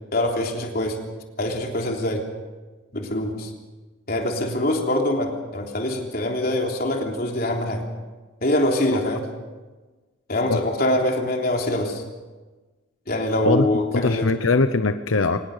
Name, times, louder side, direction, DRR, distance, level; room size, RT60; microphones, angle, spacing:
voice 1, 0.1-1.0 1.4-2.3 2.9-3.5 4.1-7.8 8.4-9.2 10.3-12.0 13.1-14.3, left 1 dB, 45° left, 1 dB, 3.5 m, -24 dB
voice 2, 13.9-15.4, left 3 dB, 85° left, 9 dB, 0.9 m, -21 dB
24.0 x 19.5 x 6.6 m, 1.3 s
head